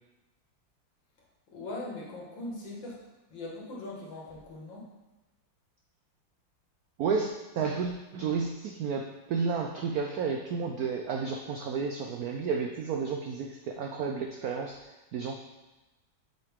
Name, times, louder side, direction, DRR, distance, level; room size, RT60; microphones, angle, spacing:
voice 1, 1.5-3.0 3.3-4.9, left 2 dB, 70° left, -4 dB, 2.3 m, -40 dB
voice 2, 7.0-15.4, right 5 dB, 75° right, 3 dB, 0.8 m, -32 dB
7.6 x 5.2 x 3.6 m, 1.1 s
omnidirectional pair, 2.2 m